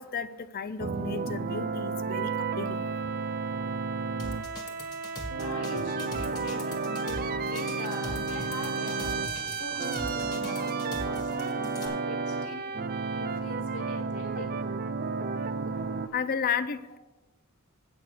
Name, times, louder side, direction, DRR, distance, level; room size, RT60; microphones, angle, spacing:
voice 1, 0.0-2.9 16.1-17.0, left 6 dB, 40° left, 13 dB, 0.5 m, -33 dB
sound 1, 0.8-16.1, right 4 dB, 40° right, 0.5 m, -32 dB
sound 2, 4.2-11.9, left 1 dB, 20° left, 1.7 m, -40 dB
voice 2, 5.4-12.7 13.1-14.7, left 2 dB, 75° left, 3 dB, 1.5 m, -42 dB
8.5 x 6.8 x 6.4 m, 1.0 s
head